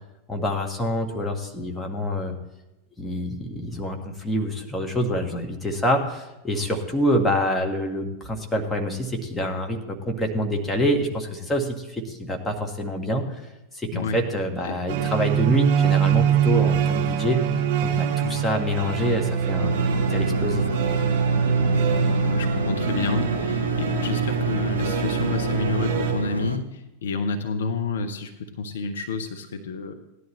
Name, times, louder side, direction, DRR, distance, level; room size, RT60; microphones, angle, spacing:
voice 1, 0.3-2.4 3.0-13.2 13.7-17.4 17.8-20.8, equal, 10° left, 1 dB, 1.7 m, -26 dB
sound 1, 14.9-26.1, right 7 dB, 50° right, 2.9 m, -24 dB
sound 2, 19.6-26.6, right 2 dB, 85° right, 0.6 m, -29 dB
voice 2, 21.6-30.0, left 4 dB, 65° left, 6 dB, 0.9 m, -30 dB
17.0 x 11.0 x 3.2 m, 0.99 s
figure-of-eight pair, 90°, 0 cm